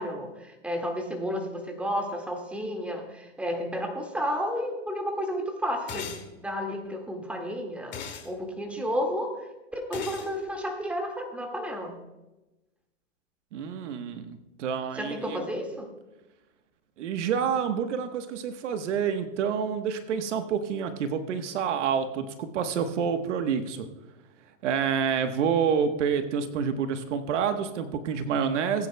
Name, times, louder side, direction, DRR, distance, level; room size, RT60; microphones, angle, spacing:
voice 1, 0.0-8.0 8.2-12.0 14.9-15.9, equal, 5° right, 2 dB, 1.8 m, -32 dB
sound 1, 5.9-6.3 7.9-8.3 9.9-10.3, left 7 dB, 30° left, 2.2 m, -37 dB
voice 2, 13.5-15.5 17.0-23.9 24.6-28.9, right 7 dB, 65° right, 8 dB, 1.2 m, -28 dB
20.5 x 9.7 x 2.2 m, 1.0 s
hypercardioid pair, 120°, 38 cm